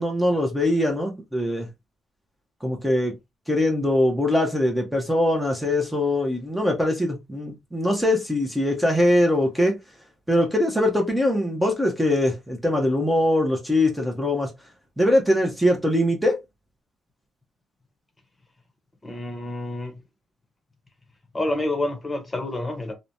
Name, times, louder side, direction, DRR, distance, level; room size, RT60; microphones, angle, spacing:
voice 1, 0.0-1.7 2.6-3.2 3.5-9.8 10.3-14.5 15.0-16.4, left 1 dB, 5° right, 0.8 m, -22 dB
voice 2, 19.0-20.0 21.3-22.9, left 1 dB, 20° left, 0.9 m, -28 dB
3.2 x 2.1 x 2.6 m
cardioid pair, 90°, 0 cm